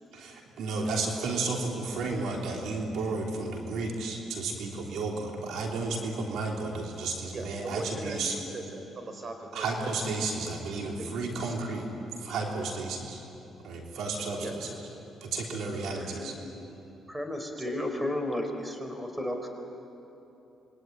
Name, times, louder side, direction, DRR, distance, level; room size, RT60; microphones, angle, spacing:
voice 1, 0.1-8.3 9.5-11.9 12.2-13.2 13.6-14.5 15.2-16.3, right 3 dB, 80° right, 0 dB, 3.5 m, -32 dB
voice 2, 7.3-10.1 10.7-11.6 14.4-14.6 17.6-17.9, right 2 dB, 45° right, 5 dB, 5.2 m, -40 dB
voice 3, 15.9-16.5 17.1-19.5, left 1 dB, 10° right, 5 dB, 3.9 m, -33 dB
27.0 x 23.0 x 9.5 m, 2.9 s
cardioid pair, 90°, 0 cm